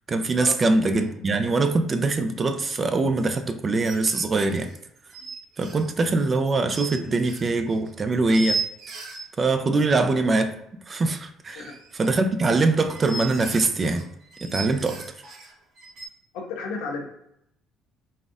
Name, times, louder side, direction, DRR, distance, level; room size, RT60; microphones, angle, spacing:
voice 1, 0.1-4.7 5.6-8.6 9.4-10.6 10.9-11.6 11.9-14.1 14.4-15.0, right 3 dB, 35° right, 8 dB, 0.5 m, -23 dB
sound 1, 0.6-0.7 0.9-1.1 3.8-9.2 11.5-16.1, right 3 dB, 70° right, 1.2 m, -36 dB
voice 2, 16.3-17.1, left 4 dB, 85° left, 2 dB, 0.8 m, -33 dB
4.2 x 2.5 x 3.5 m, 0.78 s
supercardioid pair, 75°, 0 cm